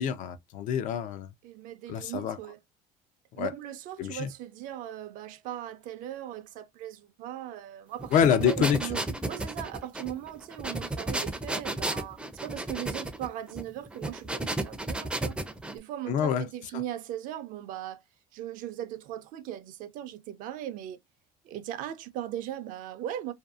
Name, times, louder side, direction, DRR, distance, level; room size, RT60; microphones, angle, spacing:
voice 1, 0.0-1.3 1.9-2.4 3.4-3.5 4.0-4.3 8.1-8.8 16.1-16.5, left 8 dB, 55° left, 0.4 m, -26 dB
voice 2, 1.4-2.6 3.4-15.4 15.7-18.0 18.3-21.0 21.4-23.3, right 12 dB, 65° right, 0.5 m, -38 dB
sound 1, 8.0-15.8, right 2 dB, 5° right, 0.4 m, -33 dB
2.6 x 2.3 x 2.3 m
cardioid pair, 125°, 15 cm